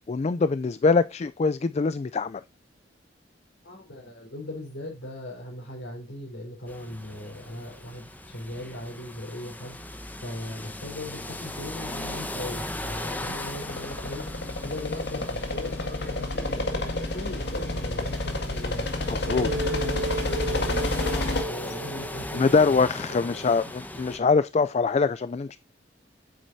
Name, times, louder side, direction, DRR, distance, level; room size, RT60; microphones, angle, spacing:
voice 1, 0.1-2.4 19.1-19.5 22.3-25.6, left 4 dB, 35° left, 0.4 m, -23 dB
voice 2, 3.6-21.0 21.4-23.7, left 1 dB, 80° left, 4.1 m, -39 dB
sound 1, 6.7-24.2, left 1 dB, 10° left, 1.0 m, -39 dB
sound 2, 12.8-21.4, left 2 dB, 65° left, 2.0 m, -30 dB
sound 3, 19.3-23.0, right 2 dB, 85° right, 1.5 m, -34 dB
8.7 x 8.5 x 2.7 m
head